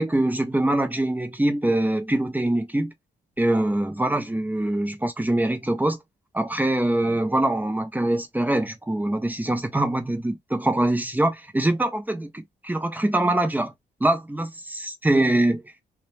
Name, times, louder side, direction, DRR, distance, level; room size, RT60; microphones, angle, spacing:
voice 1, 0.0-2.9 3.4-6.0 6.3-13.7 14.0-15.6, right 1 dB, 10° right, 0.6 m, -23 dB
2.2 x 2.1 x 3.2 m
cardioid pair, 85°, 19 cm